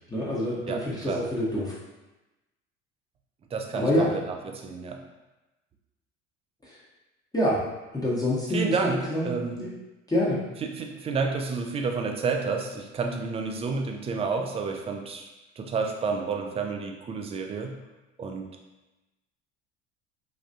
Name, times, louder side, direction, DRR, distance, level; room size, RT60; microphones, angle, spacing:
voice 1, 0.1-1.7 3.7-4.1 6.7-6.8 7.3-7.6 7.9-9.3 9.6-9.7 10.1-10.4, left 1 dB, 10° left, -8 dB, 0.8 m, -26 dB
voice 2, 0.7-1.2 3.5-5.0 8.5-9.6 10.6-15.3 15.6-17.8 18.2-18.5, right 4 dB, 20° right, 3 dB, 0.3 m, -30 dB
3.3 x 2.3 x 2.7 m, 1.0 s
hypercardioid pair, 70°, 36 cm